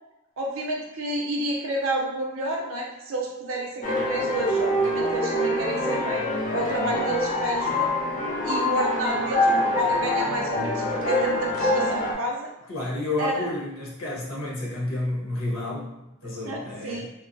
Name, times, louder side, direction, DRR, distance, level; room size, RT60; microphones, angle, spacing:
voice 1, 0.4-6.2 6.5-7.9 8.4-9.5 9.7-12.5 13.2-13.5 16.2-17.1, right 1 dB, 75° right, -1 dB, 0.6 m, -30 dB
sound 1, 3.8-12.1, left 1 dB, 35° left, 0.4 m, -25 dB
voice 2, 12.7-15.9 16.2-17.1, left 2 dB, 85° left, -5 dB, 0.9 m, -30 dB
2.8 x 2.1 x 2.6 m, 0.95 s
head